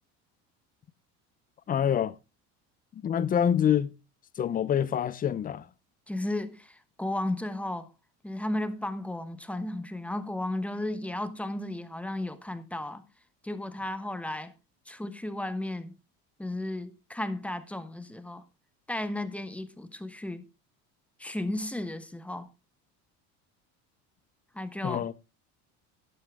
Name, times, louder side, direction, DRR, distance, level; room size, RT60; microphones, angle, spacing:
voice 1, 1.7-2.1 3.0-3.9 4.4-5.7 24.8-25.1, left 9 dB, 25° left, 0.6 m, -26 dB
voice 2, 6.1-7.9 8.2-13.0 13.4-14.5 14.9-15.9 16.4-18.4 18.9-20.5 21.2-22.5 24.5-25.0, left 1 dB, 5° left, 1.1 m, -34 dB
11.0 x 11.0 x 3.5 m
cardioid pair, 140°, 34 cm